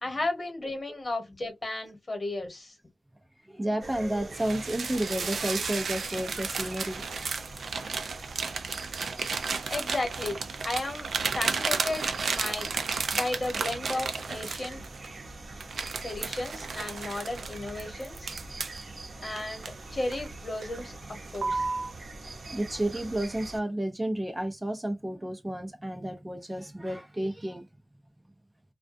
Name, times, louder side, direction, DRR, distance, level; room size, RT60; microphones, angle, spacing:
voice 1, 0.0-2.7 9.7-11.1 11.3-12.7 13.1-14.8 16.0-18.3 19.2-20.9 21.3-21.7, left 2 dB, 45° left, 1.1 m, -34 dB
voice 2, 3.4-7.0 21.6-21.7 22.2-27.7, right 1 dB, 20° right, 0.5 m, -31 dB
sound 1, 3.8-23.6, right 2 dB, 60° right, 0.7 m, -44 dB
sound 2, 4.3-15.1 15.6-18.8 19.4-20.3 20.6-20.9 21.3-21.9, right 5 dB, 85° right, 0.3 m, -33 dB
2.3 x 2.2 x 2.5 m
cardioid pair, 55°, 0 cm